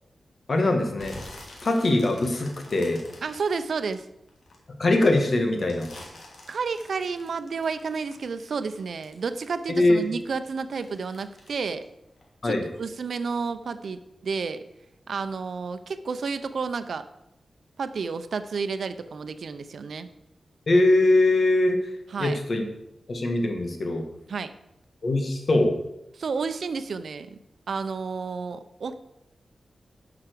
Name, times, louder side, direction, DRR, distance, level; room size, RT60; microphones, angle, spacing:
voice 1, 0.5-1.2 1.6-3.0 4.8-5.9 9.8-10.0 12.4-12.6 20.7-21.8 22.2-22.6 23.1-24.0 25.0-25.7, left 2 dB, 55° left, 4 dB, 1.9 m, -22 dB
sound 1, 0.9-4.5 5.0-9.7 10.0-12.7 13.0-13.4 13.8-13.9, left 2 dB, 75° left, 2.7 m, -47 dB
voice 2, 3.2-4.1 6.5-11.9 12.4-14.6 15.1-17.1 17.8-20.1 22.1-22.4 24.3-24.5 26.2-27.4 27.7-29.0, right 5 dB, 75° right, 11 dB, 0.7 m, -31 dB
10.5 x 6.0 x 6.8 m, 0.84 s
wide cardioid pair, 105°, 0 cm